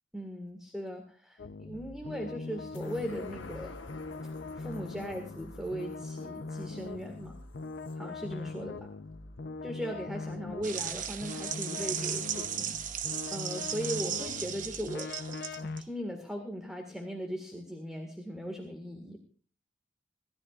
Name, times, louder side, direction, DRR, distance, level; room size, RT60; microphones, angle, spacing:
voice 1, 0.1-3.8 4.6-7.4 8.0-8.9 9.6-12.7 13.3-15.1 15.6-19.2, equal, 5° right, 3 dB, 1.8 m, -38 dB
sound 1, 1.4-15.8, left 3 dB, 55° left, 0.7 m, -41 dB
sound 2, 2.7-9.5 10.0-10.1, left 3 dB, 80° left, 1.1 m, -52 dB
sound 3, 10.6-15.8, right 8 dB, 45° right, 1.0 m, -36 dB
27.5 x 13.5 x 2.5 m, 0.39 s
head